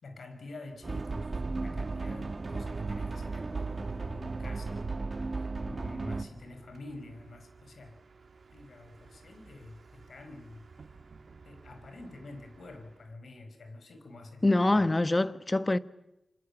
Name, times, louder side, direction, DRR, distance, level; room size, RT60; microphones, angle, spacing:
voice 1, 0.0-4.8 5.2-8.0 8.5-10.7 11.4-14.8, left 2 dB, 75° left, 5.4 m, -48 dB
Bus, 0.7-13.2, right 4 dB, 70° right, 2.9 m, -54 dB
sound 1, 0.8-6.2, right 3 dB, 45° right, 2.0 m, -35 dB
voice 2, 14.4-15.8, left 2 dB, 30° left, 1.4 m, -25 dB
27.5 x 27.0 x 7.3 m
cardioid pair, 45°, 0 cm